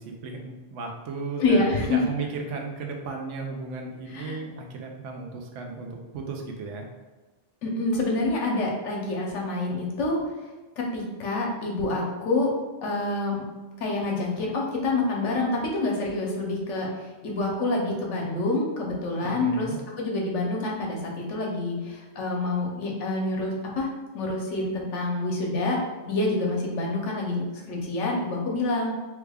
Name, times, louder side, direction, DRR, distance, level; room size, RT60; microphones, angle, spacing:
voice 1, 0.0-6.9 19.2-19.8, right 4 dB, 85° right, 2 dB, 1.0 m, -35 dB
voice 2, 1.4-2.0 4.1-4.4 7.6-10.2 10.8-12.5 12.8-13.4 13.8-19.7 20.0-25.8 26.1-28.9, left 2 dB, 90° left, -1 dB, 1.1 m, -27 dB
3.3 x 2.3 x 3.4 m, 1.3 s
omnidirectional pair, 1.2 m